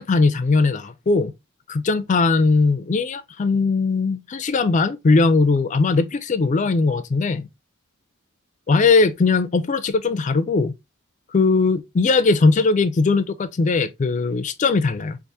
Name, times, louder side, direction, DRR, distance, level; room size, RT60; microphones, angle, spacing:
voice 1, 0.0-1.3 1.7-7.5 8.7-10.7 11.3-15.2, left 4 dB, 35° left, 0.4 m, -19 dB
4.7 x 2.5 x 2.6 m
head